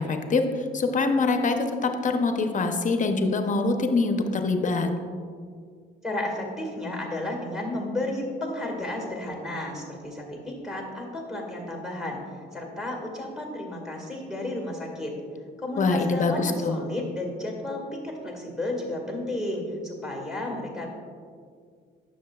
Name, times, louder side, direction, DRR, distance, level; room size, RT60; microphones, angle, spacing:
voice 1, 0.0-4.9 15.8-16.8, left 3 dB, 40° left, 6 dB, 0.7 m, -24 dB
voice 2, 6.0-12.2 12.5-15.1 15.6-20.9, left 1 dB, ahead, 0 dB, 1.8 m, -32 dB
10.0 x 6.5 x 2.3 m, 2.1 s
cardioid pair, 90°, 20 cm